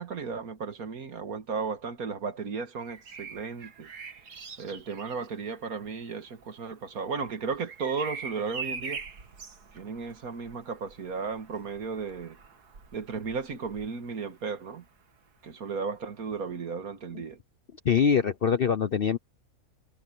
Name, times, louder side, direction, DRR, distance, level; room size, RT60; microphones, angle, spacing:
voice 1, 0.0-3.9 4.6-9.0 9.7-12.4 12.9-14.8 15.4-17.4, right 5 dB, 65° right, 2.1 m, -35 dB
Bird vocalization bird call bird song, 2.8-14.6 16.3-16.5, right 5 dB, 85° right, 2.4 m, -44 dB
voice 2, 17.8-19.2, left 7 dB, 50° left, 0.7 m, -24 dB
omnidirectional pair, 1.6 m